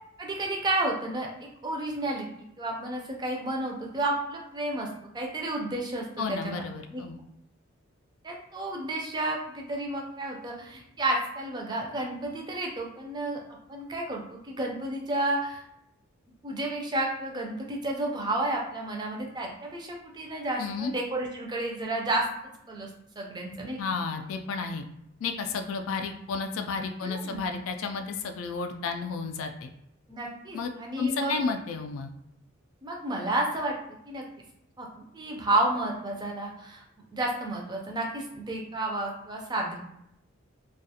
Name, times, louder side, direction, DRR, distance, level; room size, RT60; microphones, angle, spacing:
voice 1, 0.2-1.3 1.6-2.3 2.6-4.9 5.1-6.6 6.9-7.0 8.2-13.4 13.7-15.6 16.4-22.3 22.7-22.9 23.2-23.8 27.0-27.5 30.1-31.4 32.8-33.8 34.1-34.2 34.8-36.8 37.1-39.8, right 2 dB, 20° right, 0 dB, 0.4 m, -31 dB
voice 2, 6.2-7.2 20.6-20.9 23.8-24.9 25.2-29.7 30.5-30.7 31.0-32.1, left 4 dB, 70° left, 6 dB, 0.3 m, -32 dB
2.4 x 2.3 x 2.7 m, 0.77 s
head